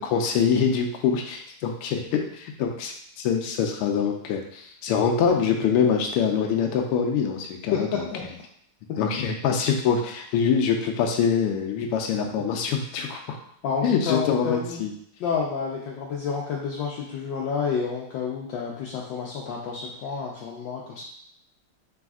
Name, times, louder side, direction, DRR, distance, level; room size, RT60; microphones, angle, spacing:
voice 1, 0.1-8.0 9.0-13.4 13.8-14.9, left 6 dB, 90° left, 2 dB, 1.5 m, -24 dB
voice 2, 7.7-8.2 13.6-14.8 15.2-21.0, left 6 dB, 75° left, -3 dB, 1.2 m, -29 dB
5.0 x 3.4 x 2.3 m, 0.66 s
omnidirectional pair, 2.3 m